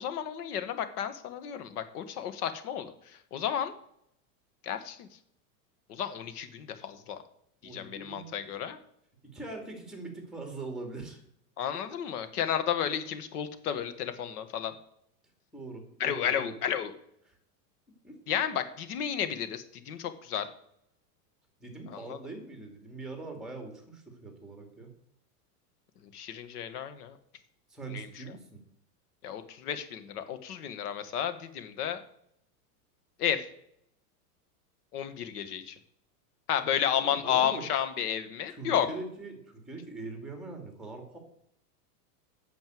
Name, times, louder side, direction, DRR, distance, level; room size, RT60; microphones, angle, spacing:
voice 1, 0.0-2.9 3.3-3.7 4.6-5.1 5.9-7.2 7.7-8.8 11.6-14.7 16.0-16.9 18.3-20.5 21.9-22.2 26.1-27.2 27.9-28.1 29.2-32.0 33.2-33.4 34.9-35.8 36.5-38.9, left 9 dB, 70° left, 10 dB, 1.8 m, -32 dB
voice 2, 7.6-8.3 9.3-11.2 15.5-16.6 17.3-17.4 18.0-18.4 21.6-24.9 27.7-28.6 36.9-37.6 38.5-41.2, right 3 dB, ahead, 4 dB, 2.4 m, -42 dB
9.3 x 7.0 x 7.8 m, 0.73 s
supercardioid pair, 160°, 47 cm